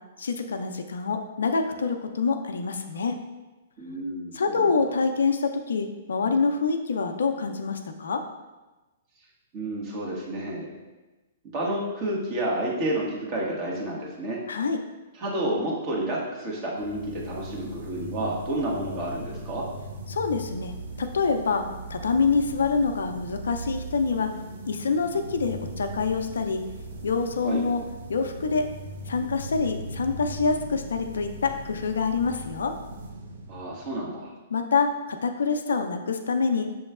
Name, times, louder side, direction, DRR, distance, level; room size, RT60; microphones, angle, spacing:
voice 1, 0.2-3.2 4.3-8.2 14.5-14.8 20.1-21.6 21.9-24.3 24.7-26.6 27.0-27.8 28.1-28.7 29.1-32.7 34.5-36.7, left 4 dB, 75° left, 6 dB, 0.4 m, -26 dB
voice 2, 3.8-4.7 9.5-10.7 11.5-14.4 15.2-19.6 27.4-27.6 33.5-34.3, right 1 dB, 40° right, -4 dB, 1.4 m, -30 dB
sound 1, 16.8-34.3, right 1 dB, 70° right, 0.7 m, -39 dB
6.9 x 3.0 x 2.4 m, 1.1 s
hypercardioid pair, 120°, 0 cm